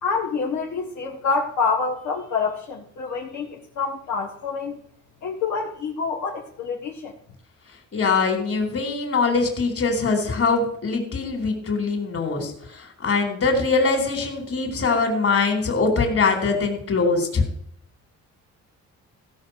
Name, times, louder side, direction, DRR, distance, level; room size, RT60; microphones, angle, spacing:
voice 1, 0.0-4.8 5.2-7.1, left 5 dB, 75° left, -1 dB, 1.7 m, -27 dB
voice 2, 7.9-17.4, left 4 dB, 50° left, 5 dB, 3.5 m, -22 dB
15.5 x 5.4 x 6.4 m, 0.69 s
cardioid pair, 90°, 30 cm